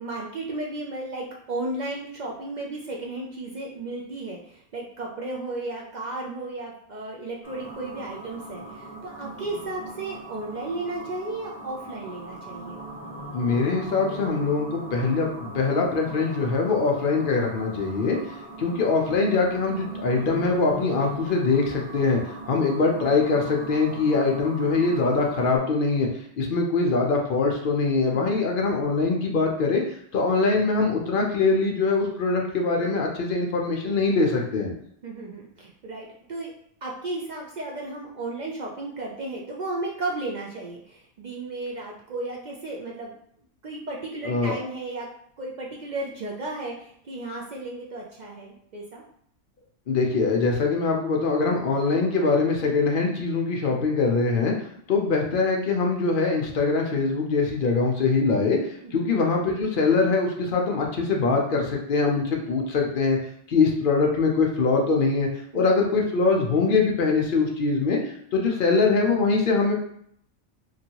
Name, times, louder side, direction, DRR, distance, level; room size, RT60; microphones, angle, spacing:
voice 1, 0.0-12.8 28.1-28.4 35.0-36.5 36.8-43.1 43.6-45.1 45.4-49.0 58.8-59.1 65.5-65.8, right 2 dB, 65° right, -2 dB, 0.4 m, -34 dB
sound 1, 7.4-25.6, right 1 dB, 10° left, 0.9 m, -39 dB
voice 2, 13.3-18.2 18.6-26.1 26.4-29.8 30.1-34.7 44.2-44.6 49.9-54.6 54.9-58.6 58.9-63.2 63.5-65.3 65.5-68.0 68.3-69.7, left 4 dB, 55° left, 0 dB, 0.6 m, -23 dB
2.9 x 2.7 x 2.8 m, 0.67 s
omnidirectional pair, 1.3 m